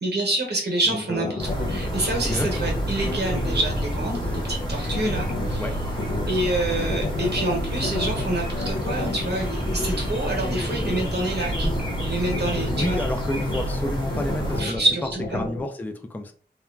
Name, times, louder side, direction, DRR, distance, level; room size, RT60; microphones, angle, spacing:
voice 1, 0.0-1.4 1.7-5.6 6.3-11.7 12.0-13.0 14.6-15.4, right 2 dB, 75° right, 0 dB, 0.8 m, -27 dB
sound 1, 0.9-15.6, left 3 dB, 85° left, 0.5 m, -32 dB
voice 2, 0.9-1.5 2.2-2.7 5.6-5.7 12.8-14.8 15.3-16.3, left 1 dB, 10° left, 6 dB, 0.3 m, -30 dB
sound 2, 1.4-14.6, equal, 25° left, 1.0 m, -28 dB
2.9 x 2.1 x 2.3 m, 0.43 s
wide cardioid pair, 45°, 17 cm